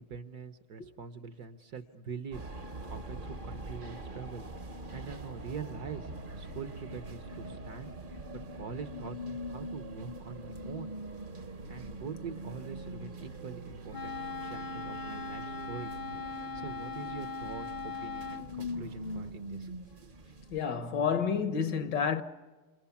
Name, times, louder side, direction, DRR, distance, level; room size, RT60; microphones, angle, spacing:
voice 1, 0.0-2.4 2.8-7.9 8.5-10.9 11.7-15.9 16.3-19.8, right 6 dB, 55° right, 1.4 m, -44 dB
sound 1, 2.3-20.6, equal, 35° right, 1.0 m, -43 dB
sound 2, 5.3-19.3, right 2 dB, 85° right, 5.5 m, -50 dB
Wind instrument woodwind instrument, 13.9-18.5, left 4 dB, 25° left, 0.7 m, -39 dB
voice 2, 20.5-22.2, left 7 dB, 60° left, 1.7 m, -29 dB
28.5 x 28.0 x 7.1 m
omnidirectional pair, 2.2 m